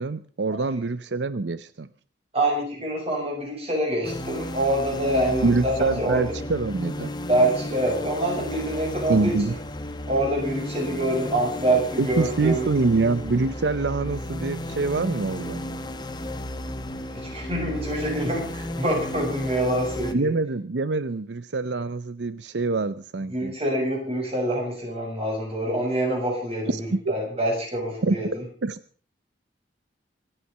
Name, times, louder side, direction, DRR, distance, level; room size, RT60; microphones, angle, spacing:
voice 1, 0.0-1.9 5.4-7.1 9.1-9.6 12.0-15.6 20.1-23.5 26.7-27.0 28.0-28.2 28.6-28.8, right 3 dB, 80° right, 14 dB, 0.7 m, -25 dB
voice 2, 2.3-6.2 7.3-9.6 10.1-12.7 17.1-20.3 23.3-28.4, right 1 dB, 35° right, 0 dB, 7.4 m, -26 dB
sound 1, 4.0-20.1, left 1 dB, 25° left, 1.2 m, -34 dB
25.5 x 9.0 x 5.5 m, 0.42 s
head